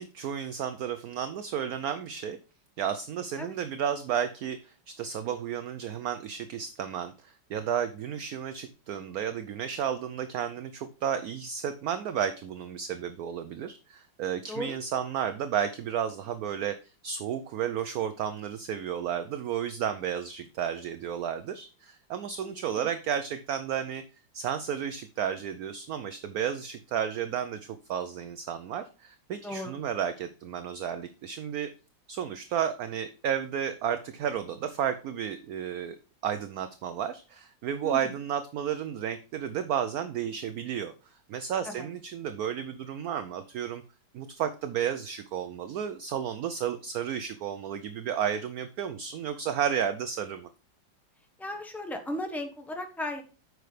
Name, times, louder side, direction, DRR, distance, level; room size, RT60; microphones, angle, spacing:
voice 1, 0.0-2.4 2.8-16.8 17.0-24.0 24.3-31.7 32.1-36.0 36.2-43.8 44.1-50.5, right 8 dB, 70° right, 10 dB, 0.9 m, -32 dB
voice 2, 22.4-22.8 29.4-29.7 37.8-38.1 41.6-41.9 51.4-53.2, left 1 dB, ahead, 5 dB, 0.7 m, -36 dB
9.3 x 6.2 x 3.3 m, 0.34 s
omnidirectional pair, 2.1 m